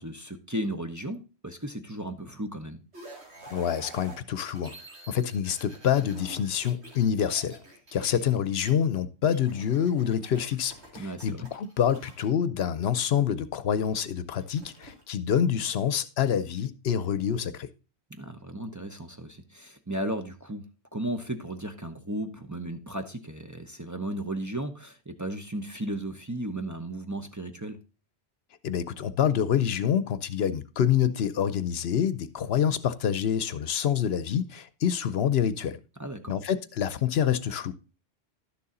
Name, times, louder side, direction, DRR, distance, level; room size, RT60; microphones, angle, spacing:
voice 1, 0.0-2.8 11.0-11.5 18.2-27.8 36.0-36.4, right 1 dB, 20° right, 0.8 m, -35 dB
sound 1, 2.9-8.7 9.3-12.3 14.4-15.0, right 2 dB, 85° right, 2.8 m, -48 dB
voice 2, 3.5-4.7 5.1-7.6 7.9-17.7 28.6-35.8 36.3-37.7, left 9 dB, 70° left, 0.9 m, -27 dB
11.5 x 6.9 x 3.7 m
omnidirectional pair, 1.1 m